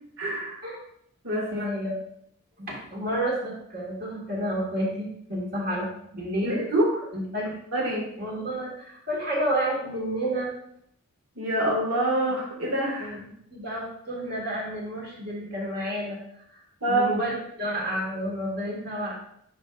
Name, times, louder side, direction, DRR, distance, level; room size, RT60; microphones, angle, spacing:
voice 1, 0.2-0.6 1.2-1.7 6.4-7.1 7.7-8.1 11.3-13.1 16.8-17.1, right 1 dB, 70° right, -3 dB, 2.4 m, -26 dB
voice 2, 1.5-2.0 2.6-6.6 7.3-7.6 8.2-10.5 13.0-16.2 16.5-16.6 16.9-19.1, equal, 40° right, -3 dB, 1.9 m, -30 dB
9.4 x 4.8 x 2.5 m, 0.70 s
head